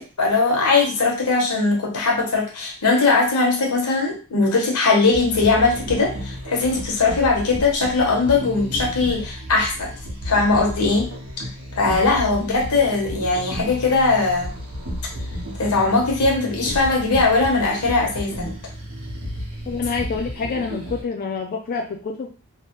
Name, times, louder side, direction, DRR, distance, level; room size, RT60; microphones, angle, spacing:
voice 1, 0.0-9.9 10.2-11.1 11.8-14.5 15.6-18.6, left 3 dB, 85° left, 0 dB, 1.0 m, -20 dB
sound 1, 5.1-21.0, equal, 90° right, 1.2 m, -33 dB
voice 2, 19.7-22.3, left 4 dB, 40° left, 1 dB, 0.3 m, -27 dB
3.1 x 2.1 x 2.9 m, 0.35 s
head